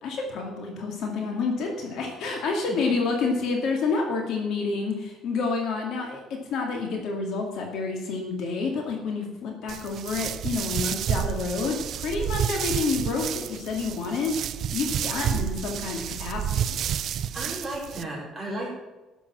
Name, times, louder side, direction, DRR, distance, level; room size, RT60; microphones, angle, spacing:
voice 1, 0.0-16.8, left 4 dB, 65° left, 2 dB, 2.2 m, -29 dB
sound 1, 9.7-18.0, right 9 dB, 55° right, 0.5 m, -30 dB
voice 2, 17.3-18.7, right 1 dB, ahead, -6 dB, 4.9 m, -34 dB
12.0 x 7.1 x 7.4 m, 1.1 s
cardioid pair, 145°, 0 cm